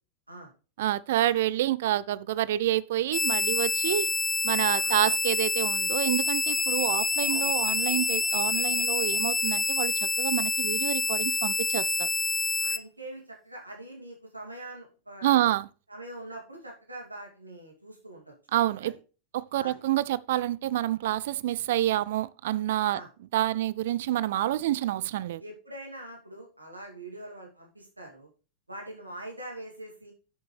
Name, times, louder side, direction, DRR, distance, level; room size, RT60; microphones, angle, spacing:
voice 1, 0.8-4.1 4.4-12.1 15.2-15.7 18.5-18.9 19.3-23.0 23.3-25.4, right 14 dB, 55° right, 0.4 m, -28 dB
sound 1, 3.1-12.8, left 4 dB, 10° left, 0.6 m, -27 dB
voice 2, 12.6-15.5 15.9-18.3 18.8-18.9 19.6-19.8 22.9-23.1 25.4-28.3 28.7-30.1, right 1 dB, 85° right, 2.6 m, -43 dB
10.0 x 6.7 x 3.3 m
figure-of-eight pair, 90°, 0 cm